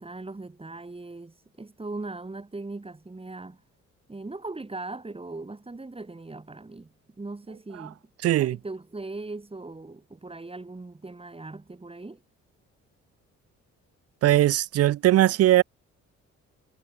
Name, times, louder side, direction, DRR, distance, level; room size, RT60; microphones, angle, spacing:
voice 1, 0.0-3.6 4.1-8.0 8.4-12.2, right 3 dB, 20° right, 7.3 m, -39 dB
voice 2, 8.2-8.6 14.2-15.6, right 14 dB, 55° right, 0.5 m, -20 dB
cardioid pair, 90°, 30 cm